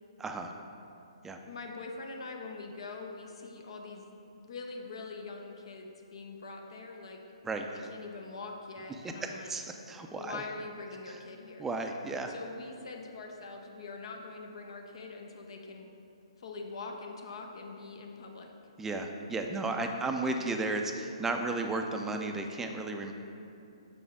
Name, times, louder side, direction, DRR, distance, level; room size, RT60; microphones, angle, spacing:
voice 1, 0.2-0.5 1.2-1.4 7.4-7.7 9.5-10.4 11.1-11.2 11.6-12.3 18.8-23.1, right 2 dB, 10° right, 4 dB, 0.5 m, -34 dB
voice 2, 1.5-4.1 4.3-7.2 7.9-9.5 10.1-11.7 12.3-15.9 16.4-18.5, left 3 dB, 60° left, 2 dB, 0.8 m, -43 dB
7.0 x 6.2 x 3.5 m, 2.7 s
figure-of-eight pair, 135°, 3 cm